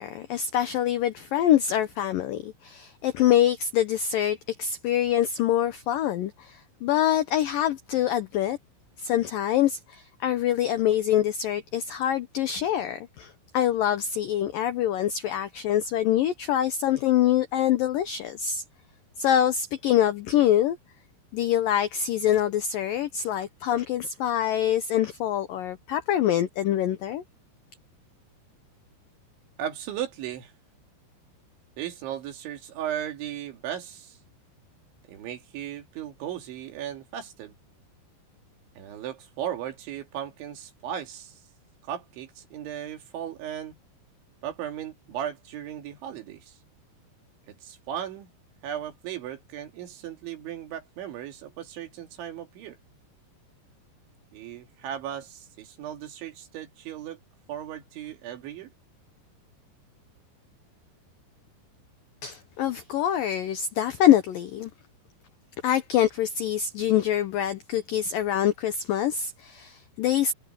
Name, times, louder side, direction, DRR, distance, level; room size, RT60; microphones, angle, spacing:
voice 1, 0.0-8.6 9.0-18.6 19.2-20.8 21.3-27.2 62.2-64.7 65.6-70.3, left 11 dB, 90° left, 1.9 m, -25 dB
voice 2, 29.6-30.5 31.8-34.2 35.1-37.5 38.8-41.4 41.9-43.8 44.4-46.6 47.5-48.3 48.6-52.8 54.3-57.2 57.5-58.7, right 10 dB, 80° right, 4.9 m, -36 dB
omnidirectional pair, 5.3 m